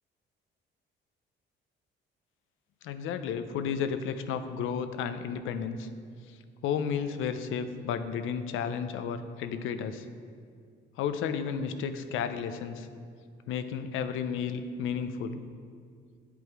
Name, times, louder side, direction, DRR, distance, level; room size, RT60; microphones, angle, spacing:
voice 1, 2.8-5.9 6.6-10.1 11.0-12.9 13.5-15.4, left 7 dB, 90° left, 9 dB, 0.6 m, -32 dB
8.3 x 7.7 x 4.7 m, 2.2 s
cardioid pair, 90°, 20 cm